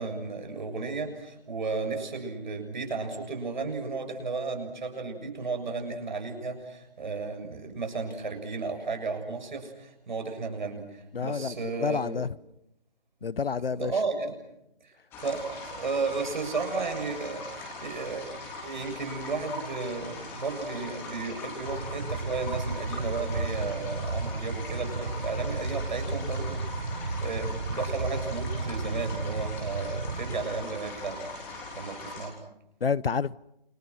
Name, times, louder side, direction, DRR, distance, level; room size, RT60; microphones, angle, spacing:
voice 1, 0.0-12.2 13.6-14.4 15.2-18.3 18.6-26.6 26.9-31.3 31.7-32.3, right 4 dB, 50° right, 7.4 m, -34 dB
voice 2, 11.1-12.3 13.2-13.9 32.8-33.4, left 5 dB, 75° left, 0.9 m, -29 dB
sound 1, 15.1-32.3, left 2 dB, 10° left, 3.5 m, -41 dB
sound 2, 21.7-30.4, right 3 dB, 70° right, 4.9 m, -33 dB
29.0 x 29.0 x 6.4 m
figure-of-eight pair, 165°, 29 cm